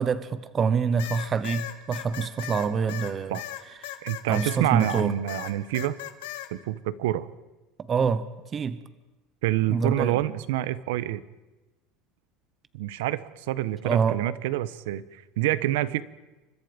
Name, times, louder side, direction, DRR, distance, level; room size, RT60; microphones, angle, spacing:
voice 1, 0.0-3.4 3.8-4.0 4.3-5.1 7.8-8.3 8.5-8.8 9.7-10.2 13.8-14.2, right 5 dB, 20° right, 14 dB, 0.9 m, -26 dB
sound 1, 1.0-5.0 5.3-6.5, left 14 dB, 85° left, 2.4 m, -37 dB
voice 2, 4.0-6.0 6.5-7.3 9.4-11.2 12.7-16.0, right 14 dB, 90° right, 15 dB, 1.2 m, -27 dB
29.5 x 25.5 x 5.3 m, 1.1 s
cardioid pair, 180°, 0 cm